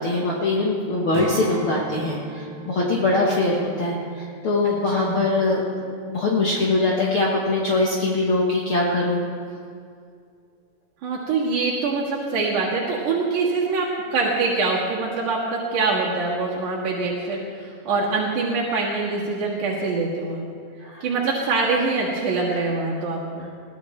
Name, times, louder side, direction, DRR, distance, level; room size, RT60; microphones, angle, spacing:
voice 1, 0.0-9.2 20.8-21.0, left 2 dB, 50° left, -4 dB, 2.0 m, -22 dB
Strum, 1.1-5.9 6.2-6.5, right 4 dB, 60° right, 2.3 m, -38 dB
voice 2, 4.6-5.2 11.0-20.4 21.0-23.5, right 3 dB, 90° right, -5 dB, 3.4 m, -24 dB
21.5 x 16.5 x 3.3 m, 2.3 s
omnidirectional pair, 3.5 m